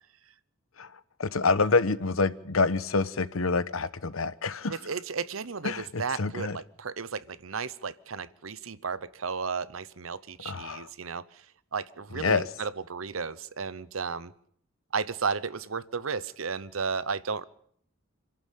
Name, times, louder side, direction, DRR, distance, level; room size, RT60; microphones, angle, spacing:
voice 1, 1.2-4.8 5.6-6.6 10.4-10.9 12.2-12.4, left 4 dB, 90° left, 1.1 m, -27 dB
voice 2, 4.7-11.4 11.7-14.3 14.9-17.4, right 5 dB, 85° right, 0.9 m, -34 dB
26.5 x 12.0 x 8.5 m
head